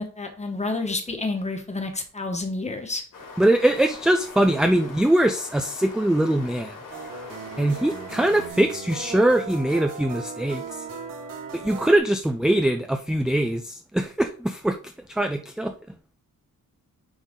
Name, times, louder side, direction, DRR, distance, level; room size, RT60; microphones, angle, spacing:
voice 1, 0.0-3.0, left 3 dB, 20° left, 5 dB, 1.3 m, -29 dB
sound 1, 3.1-8.5, left 3 dB, 65° left, 2.2 m, -42 dB
voice 2, 3.4-6.8 7.6-10.6 11.6-15.7, right 1 dB, ahead, 6 dB, 0.4 m, -22 dB
sound 2, 6.9-12.0, right 5 dB, 80° right, 2.9 m, -37 dB
10.0 x 3.9 x 3.7 m, 0.42 s
wide cardioid pair, 160°, 34 cm